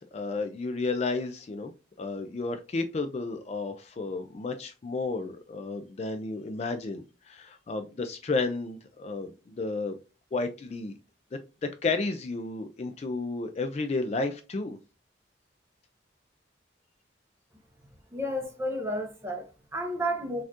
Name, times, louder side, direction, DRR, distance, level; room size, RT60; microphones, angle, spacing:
voice 1, 0.0-1.7 2.0-10.0 10.3-10.9 11.6-14.8, left 3 dB, 35° left, 0.3 m, -32 dB
voice 2, 18.1-20.4, equal, 15° right, 0.7 m, -32 dB
4.2 x 2.4 x 2.8 m
head